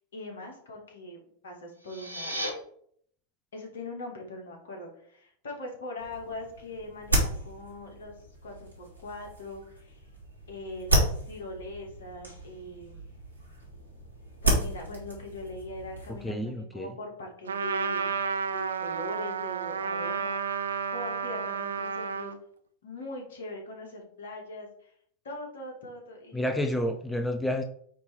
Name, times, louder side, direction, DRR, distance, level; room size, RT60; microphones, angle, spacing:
voice 1, 0.0-2.4 3.5-8.1 8.4-10.0 10.5-13.0 14.4-18.2 18.5-22.3 22.8-24.9 25.2-26.5, left 2 dB, 60° left, 1 dB, 2.3 m, -41 dB
sound 1, 1.7-2.5, equal, 85° left, 1.8 m, -35 dB
sound 2, 6.0-16.3, right 1 dB, 85° right, 2.5 m, -32 dB
voice 2, 16.1-16.9 26.3-27.6, left 1 dB, 5° left, 6 dB, 0.6 m, -30 dB
Trumpet, 17.5-22.4, right 6 dB, 70° right, 0.5 m, -31 dB
8.9 x 3.3 x 4.6 m, 0.64 s
figure-of-eight pair, 90°, 0 cm